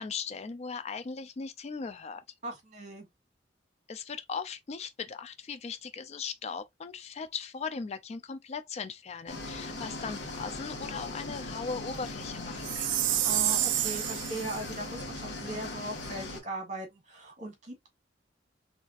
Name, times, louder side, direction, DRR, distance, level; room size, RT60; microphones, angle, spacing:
voice 1, 0.0-2.2 3.9-12.9, left 5 dB, 35° left, 0.4 m, -38 dB
voice 2, 2.4-3.1 13.2-17.9, right 2 dB, 40° right, 1.9 m, -39 dB
sound 1, 9.3-16.4, left 2 dB, 80° left, 1.5 m, -39 dB
Chime, 12.6-14.6, right 13 dB, 85° right, 0.4 m, -29 dB
4.0 x 3.3 x 2.4 m
head